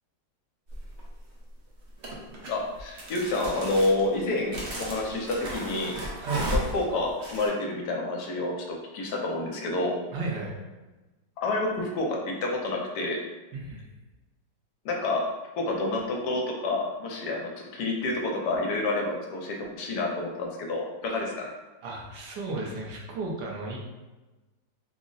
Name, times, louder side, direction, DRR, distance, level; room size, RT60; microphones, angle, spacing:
sound 1, 0.7-1.1 2.0-7.5, right 1 dB, 55° right, 0.8 m, -34 dB
voice 1, 2.5-6.0 6.5-10.0 11.4-13.2 14.8-15.2 15.5-21.5, left 2 dB, 75° left, 0 dB, 1.2 m, -29 dB
voice 2, 6.2-6.5 10.1-10.5 13.5-13.9 21.1-21.3 21.8-23.8, right 3 dB, 75° right, -2 dB, 1.3 m, -34 dB
3.6 x 2.0 x 3.8 m, 1.1 s
omnidirectional pair, 1.9 m